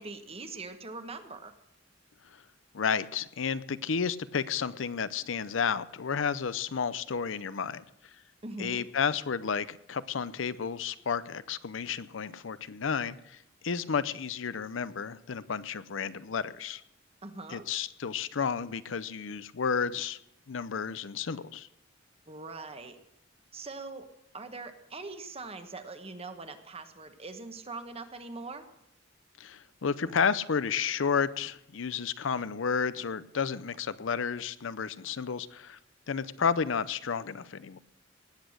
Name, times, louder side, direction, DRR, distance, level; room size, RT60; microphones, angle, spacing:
voice 1, 0.0-1.5 8.4-8.8 17.2-17.6 22.3-23.0 23.5-24.1 24.3-28.6, right 3 dB, 30° right, 8 dB, 1.2 m, -42 dB
voice 2, 2.7-7.8 8.6-16.8 17.5-20.2 20.5-21.7 29.4-35.8 36.1-37.8, left 6 dB, 75° left, 16 dB, 0.6 m, -32 dB
18.5 x 8.3 x 6.4 m, 0.82 s
head